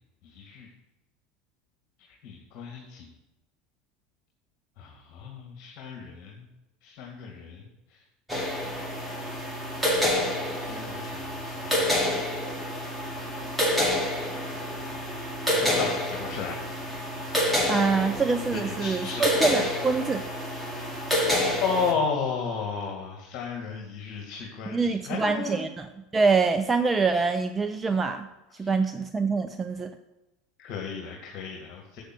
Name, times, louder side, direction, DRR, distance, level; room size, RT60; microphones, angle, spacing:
voice 1, 0.2-0.7 2.0-3.1 4.8-6.5 6.8-8.0 9.9-11.9 14.5-15.1 15.6-16.6 18.5-19.3 21.6-25.7 28.5-28.9 30.6-32.0, left 5 dB, 50° left, 0 dB, 2.0 m, -34 dB
sound 1, 8.3-21.9, left 1 dB, 5° right, 2.4 m, -28 dB
voice 2, 17.6-20.3 24.7-25.9 26.1-28.3 28.6-29.9, right 4 dB, 20° right, 8 dB, 0.6 m, -25 dB
7.7 x 6.6 x 7.9 m, 0.99 s
hypercardioid pair, 80°, 0 cm